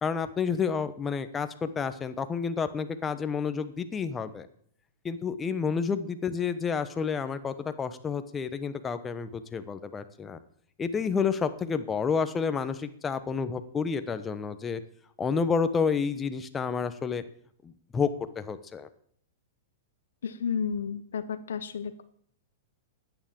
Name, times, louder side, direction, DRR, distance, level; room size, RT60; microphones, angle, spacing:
voice 1, 0.0-4.5 5.0-10.4 10.8-14.8 15.2-17.2 17.6-18.9, left 6 dB, 15° left, 10 dB, 0.9 m, -30 dB
voice 2, 20.2-22.0, left 6 dB, 90° left, 10 dB, 0.9 m, -32 dB
11.0 x 9.2 x 7.5 m, 0.64 s
hypercardioid pair, 140°, 0 cm